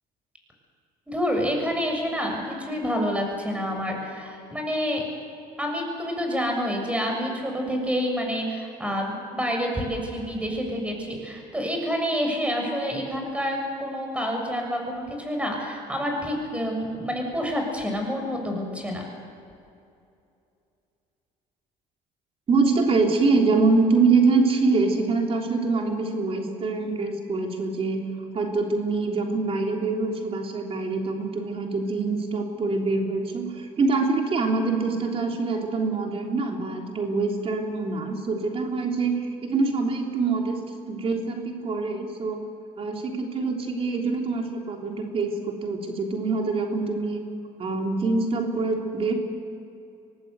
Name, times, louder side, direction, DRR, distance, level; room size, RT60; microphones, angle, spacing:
voice 1, 1.1-5.0 5.6-19.0, equal, 10° right, 2 dB, 7.0 m, -28 dB
voice 2, 22.5-42.4 42.8-47.2 47.6-49.1, right 3 dB, 40° right, 1 dB, 3.4 m, -25 dB
24.5 x 18.5 x 8.2 m, 2.6 s
cardioid pair, 100°, 14 cm